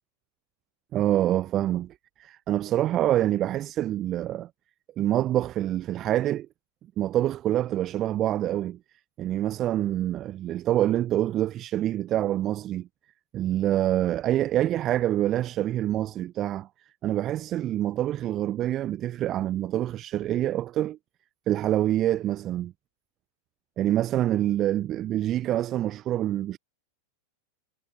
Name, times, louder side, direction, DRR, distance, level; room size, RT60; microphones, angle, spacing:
voice 1, 0.9-1.9 2.2-4.5 5.0-6.5 7.0-8.8 9.2-12.9 13.3-16.7 17.0-21.0 21.5-22.7 23.8-26.6, right 13 dB, 30° right, 0.6 m, -26 dB
figure-of-eight pair, 90°, 0 cm